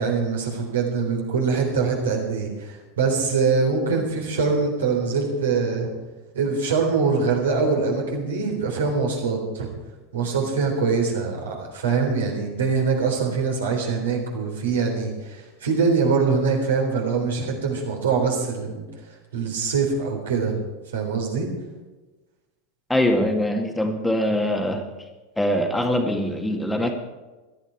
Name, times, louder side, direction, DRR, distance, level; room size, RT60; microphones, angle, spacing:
voice 1, 0.0-5.9 6.3-9.7 10.1-18.9 19.3-20.6 20.9-21.5, right 5 dB, 70° right, 1 dB, 3.7 m, -23 dB
voice 2, 22.9-24.8 25.4-26.9, left 1 dB, 5° left, 3 dB, 1.8 m, -23 dB
17.5 x 12.0 x 4.6 m, 1.2 s
figure-of-eight pair, 85°, 0 cm